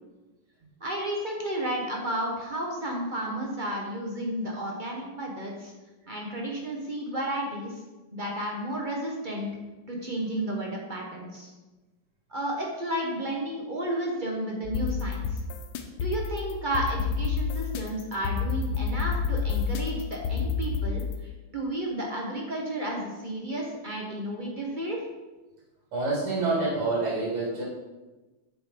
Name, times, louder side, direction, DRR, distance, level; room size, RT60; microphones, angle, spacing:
voice 1, 0.8-5.7 6.1-7.8 8.1-9.5 9.9-11.5 12.3-15.4 15.9-25.0, right 1 dB, 35° right, -1 dB, 0.8 m, -32 dB
sound 1, 14.6-21.2, left 5 dB, 90° left, 1.7 m, -29 dB
voice 2, 25.9-27.6, right 3 dB, 85° right, -4 dB, 2.7 m, -27 dB
7.1 x 5.3 x 5.1 m, 1.2 s
omnidirectional pair, 2.4 m